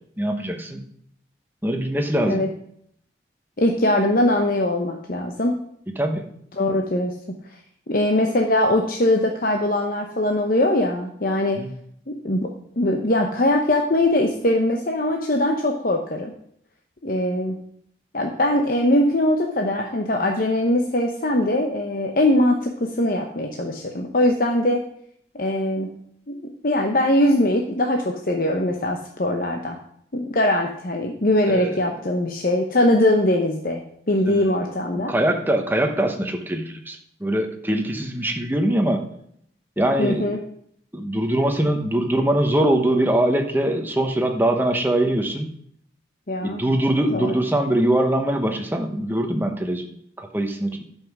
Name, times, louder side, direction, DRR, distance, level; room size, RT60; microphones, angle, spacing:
voice 1, 0.2-0.8 1.6-2.5 5.9-6.2 11.6-11.7 31.5-31.9 34.3-34.5 34.9-39.1 39.8-40.3 40.9-45.5 46.4-50.8, right 1 dB, 10° right, 4 dB, 1.1 m, -22 dB
voice 2, 3.6-5.6 6.6-7.1 7.9-11.6 12.1-12.5 12.8-16.3 17.0-17.6 18.1-24.8 25.3-25.9 26.3-26.4 26.6-29.8 30.1-35.1 40.0-40.4 46.3-46.6 47.1-47.3, left 1 dB, 50° left, 2 dB, 0.9 m, -21 dB
11.5 x 5.6 x 6.1 m, 0.69 s
head